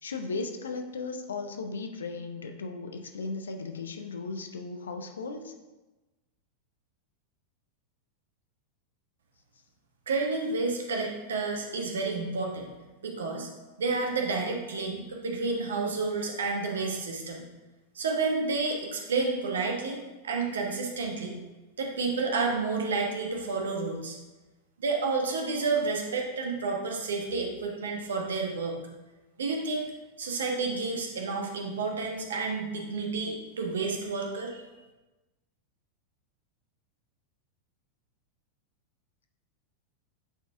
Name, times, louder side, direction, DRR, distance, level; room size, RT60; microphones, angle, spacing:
voice 1, 0.0-5.5, left 3 dB, 70° left, 5 dB, 0.7 m, -36 dB
voice 2, 10.1-12.7 13.0-13.5 13.8-17.4 17.9-21.4 21.8-24.2 24.8-28.8 29.4-29.9 30.2-34.6, right 4 dB, 65° right, 1 dB, 1.1 m, -30 dB
9.1 x 4.1 x 3.4 m, 1.1 s
figure-of-eight pair, 90°, 0 cm